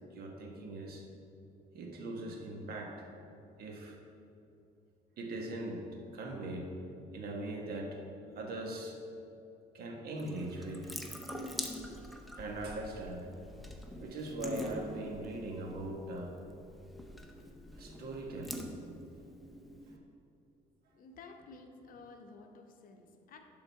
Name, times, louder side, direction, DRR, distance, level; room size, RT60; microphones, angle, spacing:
voice 1, 0.1-1.0 1.7-3.1 3.6-4.0 5.2-6.7 7.1-8.0 8.3-9.0 9.7-11.0 12.1-13.3 14.0-16.4 17.7-18.7 19.9-20.0, right 1 dB, 65° right, 1 dB, 1.3 m, -41 dB
Water tap faucet / Sink (filling or washing) / Drip, 10.2-20.0, equal, ahead, 0.6 m, -45 dB
voice 2, 20.9-23.4, left 4 dB, 55° left, 4 dB, 0.8 m, -53 dB
11.0 x 3.9 x 4.6 m, 2.7 s
cardioid pair, 110°, 17 cm